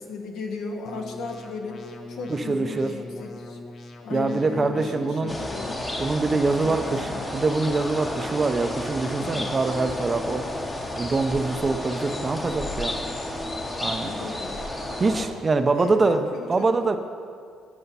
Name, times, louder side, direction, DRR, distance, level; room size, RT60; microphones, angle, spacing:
voice 1, 0.0-1.8 2.1-3.6 4.0-5.8 6.6-7.2 9.2-9.5 14.1-14.6 15.7-17.0, left 4 dB, 75° left, 2 dB, 1.0 m, -36 dB
sound 1, 0.8-5.8, left 2 dB, 55° left, 0.7 m, -42 dB
voice 2, 2.3-2.9 4.1-5.3 6.0-10.5 11.0-13.0 13.8-14.1 15.0-17.0, right 3 dB, 30° right, 8 dB, 0.5 m, -24 dB
sound 2, 5.3-15.3, left 1 dB, 20° left, 0.8 m, -32 dB
7.9 x 5.0 x 5.5 m, 2.1 s
cardioid pair, 100°, 0 cm